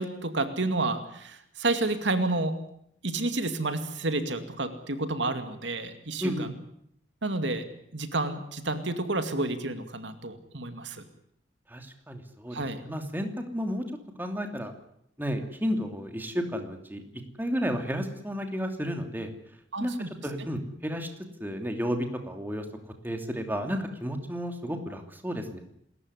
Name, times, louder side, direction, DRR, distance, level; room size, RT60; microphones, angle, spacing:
voice 1, 0.0-2.6 3.0-6.5 7.2-7.7 7.9-11.0 12.5-12.8 19.7-20.1, right 2 dB, 80° right, 9 dB, 2.3 m, -30 dB
voice 2, 6.2-6.5 11.7-13.8 14.2-14.7 15.2-17.0 17.4-19.3 19.8-19.9 20.2-21.1 21.4-22.6 23.0-25.6, equal, 10° right, 5 dB, 2.9 m, -32 dB
28.0 x 14.0 x 9.8 m, 0.72 s
head